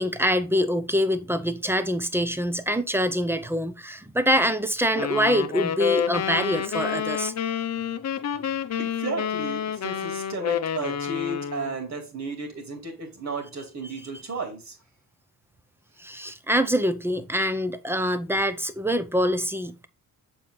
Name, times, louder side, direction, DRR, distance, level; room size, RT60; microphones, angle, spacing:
voice 1, 0.0-7.3 16.0-19.9, equal, 5° right, 0.6 m, -25 dB
sound 1, 4.9-11.8, left 8 dB, 50° left, 0.7 m, -28 dB
voice 2, 8.8-14.8, right 3 dB, 50° right, 2.9 m, -33 dB
7.1 x 4.4 x 3.8 m
cardioid pair, 100°, 35 cm